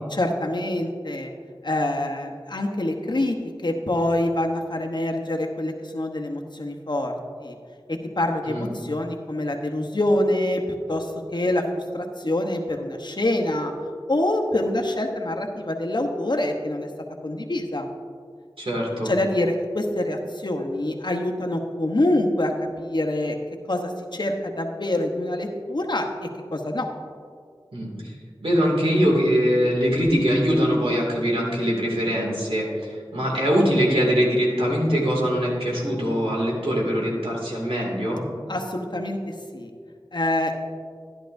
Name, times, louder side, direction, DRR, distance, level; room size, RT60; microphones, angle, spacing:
voice 1, 0.1-1.3 1.6-3.4 3.6-7.1 7.4-7.6 7.9-10.6 10.9-13.7 14.1-16.9 17.2-17.9 19.0-22.5 22.8-23.4 23.7-26.0 26.5-26.9 38.5-39.7 40.1-40.5, left 1 dB, 55° left, 2 dB, 1.0 m, -25 dB
voice 2, 18.6-19.1 27.7-28.1 28.4-38.2, equal, 80° right, -3 dB, 2.4 m, -22 dB
11.5 x 11.0 x 2.6 m, 2.1 s
wide cardioid pair, 45°, 9 cm